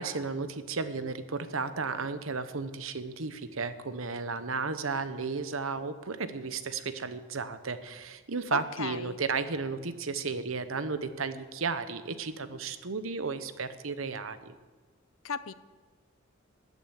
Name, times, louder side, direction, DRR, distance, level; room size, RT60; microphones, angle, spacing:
voice 1, 0.0-14.5, right 4 dB, 75° right, 12 dB, 1.0 m, -34 dB
voice 2, 8.5-9.2 15.2-15.5, left 6 dB, 75° left, 16 dB, 0.6 m, -35 dB
13.5 x 9.3 x 9.1 m, 1.4 s
head